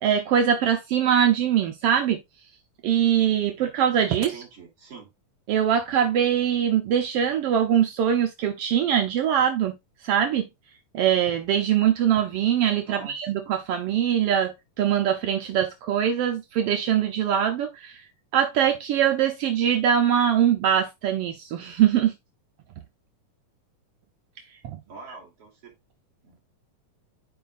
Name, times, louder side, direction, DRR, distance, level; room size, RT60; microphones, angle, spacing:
voice 1, 0.0-2.2 2.8-4.4 5.5-9.8 10.0-10.5 10.9-18.0 18.3-22.2 24.6-24.8, right 9 dB, 85° right, 1.3 m, -22 dB
voice 2, 4.3-5.1 12.9-13.2 24.9-25.7 26.2-26.4, right 4 dB, 45° right, 3.5 m, -44 dB
11.5 x 4.9 x 2.5 m
omnidirectional pair, 3.7 m